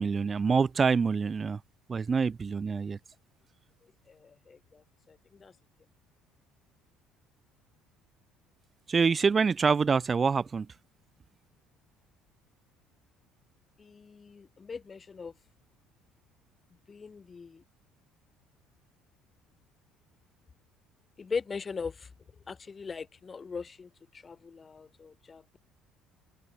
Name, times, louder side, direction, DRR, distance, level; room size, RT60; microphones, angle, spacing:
voice 1, 0.0-1.6 1.9-3.0 8.9-10.7, right 5 dB, 35° right, 3.7 m, -26 dB
voice 2, 4.1-4.8 5.1-5.5 13.8-15.3 16.9-17.6 21.2-22.1 22.5-25.6, left 5 dB, 30° left, 5.3 m, -40 dB
hypercardioid pair, 60°, 0 cm